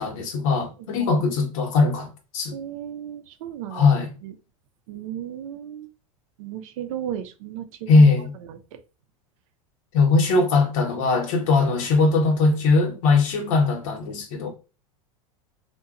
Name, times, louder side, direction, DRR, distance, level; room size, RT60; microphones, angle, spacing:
voice 1, 0.0-2.1 2.3-2.5 3.7-4.1 7.9-8.3 9.9-14.5, left 3 dB, 65° left, 0.9 m, -20 dB
voice 2, 2.5-3.9 4.2-4.3 4.9-5.9 6.4-8.0 8.5-8.8, right 10 dB, 70° right, 0.5 m, -35 dB
2.8 x 2.2 x 2.3 m
hypercardioid pair, 100°, 18 cm